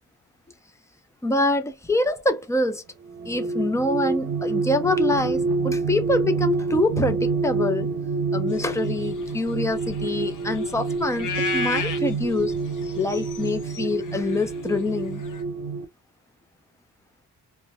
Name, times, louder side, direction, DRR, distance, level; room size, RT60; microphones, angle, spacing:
voice 1, 1.2-2.8 3.3-7.9 8.3-12.6 13.0-15.2, left 2 dB, 10° left, 0.3 m, -25 dB
sound 1, 3.0-15.8, right 3 dB, 65° right, 0.8 m, -27 dB
sound 2, 8.6-15.4, left 5 dB, 50° left, 0.6 m, -34 dB
2.3 x 2.1 x 2.8 m
wide cardioid pair, 140°, 41 cm